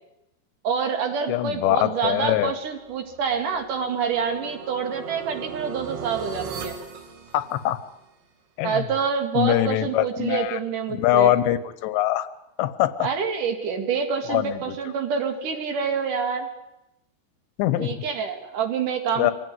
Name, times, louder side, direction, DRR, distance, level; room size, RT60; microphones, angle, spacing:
voice 1, 0.6-6.8 8.6-11.3 13.0-16.5 17.8-19.3, right 6 dB, 50° right, 6 dB, 3.3 m, -27 dB
voice 2, 1.3-2.5 7.3-7.8 8.6-8.9 9.4-10.6 10.9-12.3 12.6-13.1 14.3-14.8 17.6-18.0 19.2-19.3, left 14 dB, 75° left, 13 dB, 3.0 m, -23 dB
sound 1, 2.8-8.0, right 6 dB, 80° right, 4.7 m, -38 dB
25.0 x 17.0 x 9.5 m, 0.89 s
omnidirectional pair, 5.3 m